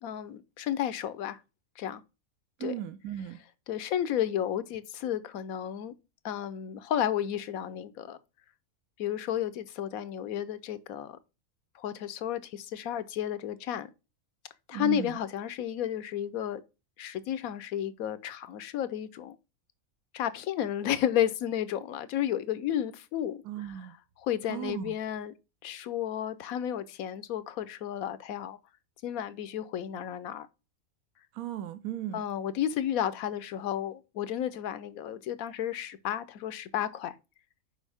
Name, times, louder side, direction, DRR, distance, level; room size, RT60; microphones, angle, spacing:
voice 1, 0.0-1.4 1.8-2.0 2.6-2.7 3.7-5.9 6.2-8.2 9.0-11.2 11.7-13.9 14.7-16.6 17.0-19.4 20.1-23.9 24.2-25.3 25.6-28.6 29.0-30.5 32.1-37.1, left 10 dB, 80° left, 1.1 m, -32 dB
voice 2, 2.6-3.4 14.7-15.2 23.4-23.9 24.5-24.9 31.3-32.2, right 11 dB, 80° right, 1.0 m, -36 dB
6.3 x 5.2 x 3.4 m
omnidirectional pair, 1.5 m